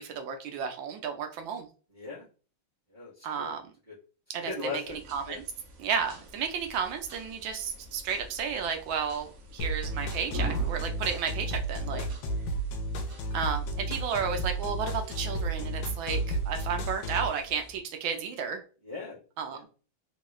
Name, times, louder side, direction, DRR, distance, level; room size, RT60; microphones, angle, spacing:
voice 1, 0.0-1.7 3.2-3.6 4.3-5.4 5.8-12.0 13.3-18.6 19.4-19.7, right 6 dB, 80° right, 5 dB, 1.3 m, -33 dB
voice 2, 1.9-2.2 2.9-3.5 3.9-4.0 4.4-5.4 11.9-12.1 18.8-19.2 19.5-19.7, left 4 dB, 30° right, -7 dB, 0.9 m, -39 dB
sound 1, 4.8-17.8, right 2 dB, 55° right, 1.0 m, -47 dB
sound 2, 9.6-17.3, right 1 dB, 75° left, 1.3 m, -32 dB
3.5 x 2.3 x 3.0 m, 0.37 s
omnidirectional pair, 2.2 m